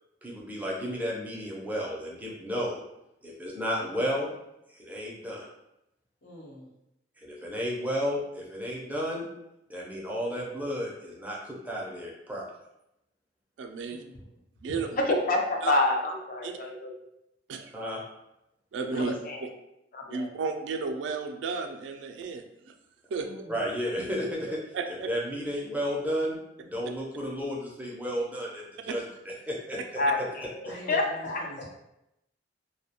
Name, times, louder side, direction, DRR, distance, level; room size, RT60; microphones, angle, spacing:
voice 1, 0.2-2.8 3.2-4.3 4.7-5.5 7.2-9.2 9.7-12.4 17.7-18.0 23.5-24.5 24.9-29.8, equal, 10° right, -4 dB, 0.4 m, -33 dB
voice 2, 6.2-6.7 13.8-14.4 23.2-23.6 30.7-31.6, equal, 85° left, -5 dB, 0.9 m, -45 dB
voice 3, 13.6-14.0 14.6-15.0 15.6-15.7 16.4-16.5 17.5-17.7 18.7-19.1 20.1-22.7 23.1-23.3 24.7-25.1, right 4 dB, 80° right, 6 dB, 0.3 m, -33 dB
voice 4, 15.0-15.4 15.7-16.9 18.9-19.4 19.9-20.3 30.0-30.6 30.9-31.4, left 2 dB, 50° left, 1 dB, 0.4 m, -27 dB
2.3 x 2.1 x 2.8 m, 0.85 s
head